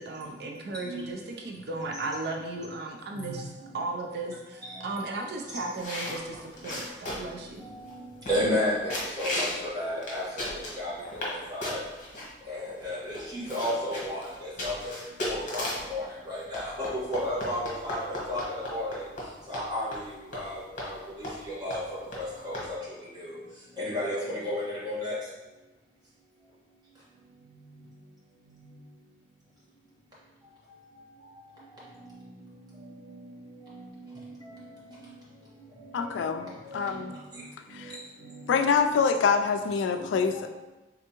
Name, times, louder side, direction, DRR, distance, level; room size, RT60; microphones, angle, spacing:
voice 1, 0.0-7.8, right 2 dB, 60° right, 2 dB, 0.4 m, -36 dB
sound 1, 5.8-7.4 7.9-8.0 8.3-8.6 8.9-9.6 10.0-11.4 11.6-12.3 12.8-12.9 13.1-15.9 16.5-19.3 19.5-19.7 19.9-20.0 20.3-20.4 20.8-20.9 21.2-21.4 21.7-21.8 22.1-22.2 22.5-22.7, left 1 dB, 45° left, 1.1 m, -35 dB
voice 2, 8.3-8.7 9.2-9.5 9.7-10.2 10.8-10.9 11.2-11.3 11.7-11.8 12.5-12.6 12.8-13.0 13.5-14.2 14.6-14.7 15.2-15.6 15.9-16.0 16.3-16.6 17.1-17.6 17.8-18.0 18.3-18.4 18.7-18.9 19.5-19.9 21.6-21.8 22.2-22.5 23.9-24.2 24.4-25.1, left 1 dB, 20° right, -8 dB, 1.3 m, -30 dB
voice 3, 35.9-37.2 37.7-38.0 38.5-40.5, left 5 dB, 85° left, 8 dB, 0.3 m, -26 dB
3.6 x 3.4 x 2.9 m, 1.1 s
head